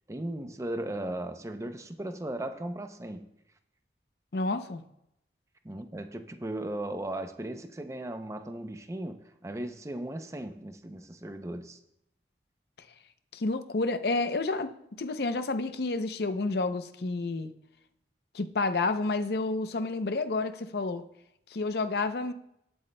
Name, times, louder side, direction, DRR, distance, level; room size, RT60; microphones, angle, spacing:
voice 1, 0.1-3.3 5.6-11.8, right 1 dB, 15° right, 0.5 m, -37 dB
voice 2, 4.3-4.8 13.3-14.7 15.0-17.5 18.3-21.0 21.5-22.3, left 3 dB, 65° left, 0.6 m, -30 dB
19.0 x 7.9 x 2.2 m
head